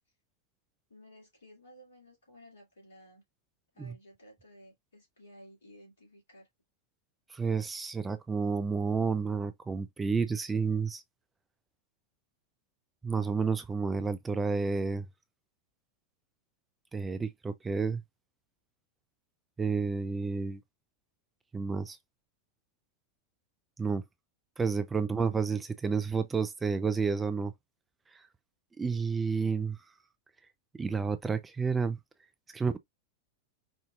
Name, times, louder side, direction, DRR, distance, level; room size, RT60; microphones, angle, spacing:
voice 1, 0.9-3.2 3.7-6.5, equal, 70° left, 2.4 m, -55 dB
voice 2, 7.3-11.0 13.0-15.0 16.9-18.0 19.6-20.6 21.5-22.0 23.8-24.0 24.6-27.5 28.8-29.8 30.8-32.0 32.5-32.8, right 5 dB, 15° right, 0.4 m, -30 dB
4.9 x 2.6 x 2.4 m
figure-of-eight pair, 90°, 0 cm